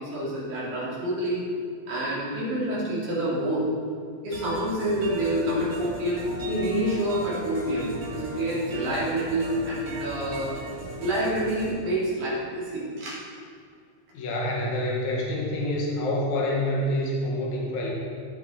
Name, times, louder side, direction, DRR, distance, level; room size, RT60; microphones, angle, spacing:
voice 1, 0.0-1.4 1.9-3.6 4.2-10.6 11.0-13.2, right 1 dB, 75° right, -8 dB, 4.4 m, -27 dB
sound 1, 4.3-11.7, right 1 dB, 45° right, 2.8 m, -38 dB
voice 2, 14.1-17.9, left 1 dB, 70° left, -3 dB, 2.9 m, -27 dB
16.5 x 5.8 x 4.3 m, 2.2 s
omnidirectional pair, 3.6 m